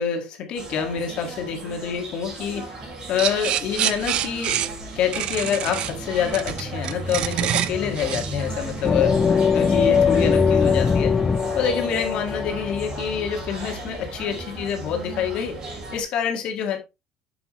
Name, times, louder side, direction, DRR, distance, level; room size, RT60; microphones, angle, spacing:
voice 1, 0.0-4.6 4.9-9.2 9.5-11.2 11.5-16.8, left 7 dB, 55° left, 1.9 m, -27 dB
sound 1, 0.5-16.0, right 1 dB, 35° right, 4.2 m, -34 dB
sound 2, 3.2-9.3, right 11 dB, 55° right, 0.6 m, -27 dB
sound 3, 8.8-13.4, left 6 dB, 25° left, 0.3 m, -21 dB
7.1 x 7.1 x 3.1 m
cardioid pair, 135°, 2 cm